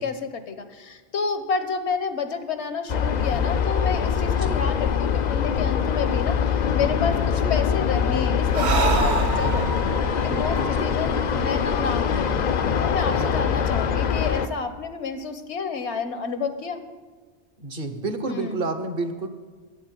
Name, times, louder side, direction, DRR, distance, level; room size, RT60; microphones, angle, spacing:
voice 1, 0.0-9.9 10.2-12.3 12.8-16.8 18.2-18.6, left 5 dB, 75° left, 9 dB, 1.2 m, -30 dB
sound 1, 2.9-14.5, left 7 dB, 50° left, 0.6 m, -23 dB
voice 2, 4.2-4.6 7.2-7.6 10.6-10.9 13.1-13.5 17.6-19.3, right 3 dB, 55° right, 8 dB, 1.2 m, -31 dB
Breathing, 8.4-12.0, right 5 dB, 75° right, 1.0 m, -27 dB
11.0 x 7.7 x 9.0 m, 1.5 s
omnidirectional pair, 1.1 m